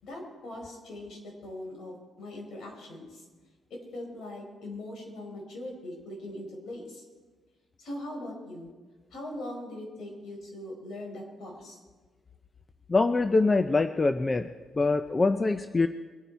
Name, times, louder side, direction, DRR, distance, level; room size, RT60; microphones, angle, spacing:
voice 1, 0.0-3.2 3.7-7.0 7.8-8.7 9.1-11.8, left 1 dB, 70° left, 1 dB, 4.5 m, -41 dB
voice 2, 12.9-14.5 14.7-15.9, left 3 dB, 25° left, 10 dB, 0.5 m, -24 dB
22.5 x 9.2 x 4.6 m, 1.3 s
cardioid pair, 90°, 0 cm